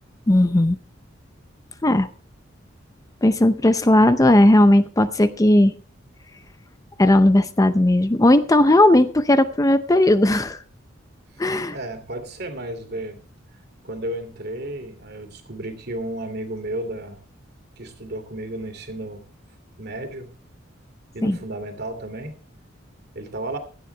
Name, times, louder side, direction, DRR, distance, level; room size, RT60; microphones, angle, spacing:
voice 1, 0.3-0.8 1.8-2.1 3.2-5.7 7.0-10.6 11.4-11.7 21.2-21.4, left 1 dB, 20° left, 0.6 m, -16 dB
voice 2, 11.3-13.2 13.8-17.2 17.8-19.3 19.8-20.3 21.1-22.4 23.1-23.6, right 1 dB, 55° right, 2.7 m, -33 dB
17.0 x 12.5 x 3.3 m
head